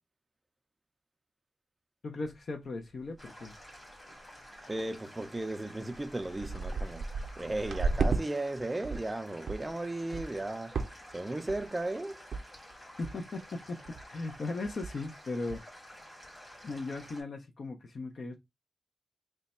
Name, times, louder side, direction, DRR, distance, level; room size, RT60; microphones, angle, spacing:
voice 1, 2.0-3.5 13.0-13.8 14.1-15.6 16.6-18.4, left 3 dB, 60° left, 0.5 m, -37 dB
sound 1, 2.2-2.3 2.8-2.9 3.2-3.6 3.9-4.2 4.8-4.9 5.5-5.6 5.9-8.2 8.6-9.1 9.5-9.7 10.1-10.4 10.7-11.2 11.5-11.8 12.3-12.4 12.7-12.8 13.0-13.4 13.8-14.1 14.3-14.4 14.6-15.1 15.5-15.6, right 4 dB, 85° right, 0.4 m, -34 dB
sound 2, 3.2-17.2, equal, 25° left, 1.7 m, -51 dB
voice 2, 4.7-7.1 7.4-10.8 11.1-12.2, right 2 dB, 20° right, 0.3 m, -35 dB
3.2 x 2.2 x 4.0 m
wide cardioid pair, 155°, 0 cm